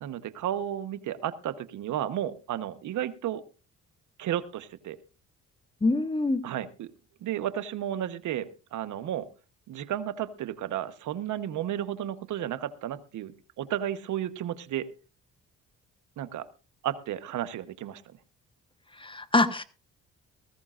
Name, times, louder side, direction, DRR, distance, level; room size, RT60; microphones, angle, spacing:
voice 1, 0.0-3.4 4.2-5.0 6.4-6.9 7.2-9.3 9.7-14.9 16.2-16.5 16.8-18.0, right 11 dB, 75° right, 12 dB, 1.1 m, -33 dB
voice 2, 5.8-6.4 19.0-19.6, left 2 dB, 15° left, 11 dB, 1.2 m, -24 dB
19.0 x 15.0 x 2.5 m, 0.33 s
cardioid pair, 90°, 30 cm